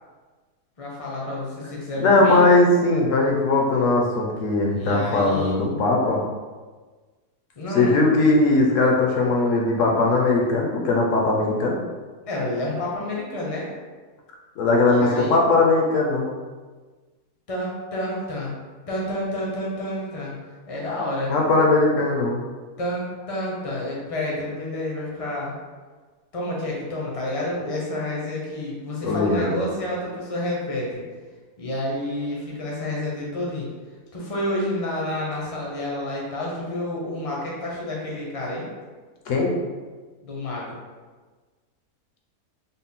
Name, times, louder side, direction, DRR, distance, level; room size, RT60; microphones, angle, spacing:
voice 1, 0.8-2.4 4.7-5.8 7.6-8.0 12.3-13.7 14.9-15.4 17.5-18.5 18.9-20.4 20.7-21.3 22.8-25.5 26.3-31.0 31.6-33.7 34.1-38.7 40.2-40.7, left 1 dB, 35° left, -4 dB, 0.5 m, -29 dB
voice 2, 2.0-6.2 7.7-11.8 14.6-16.3 21.3-22.5 29.0-29.6 39.3-39.6, left 2 dB, 65° left, 0 dB, 0.8 m, -19 dB
3.9 x 2.1 x 3.6 m, 1.4 s
omnidirectional pair, 1.7 m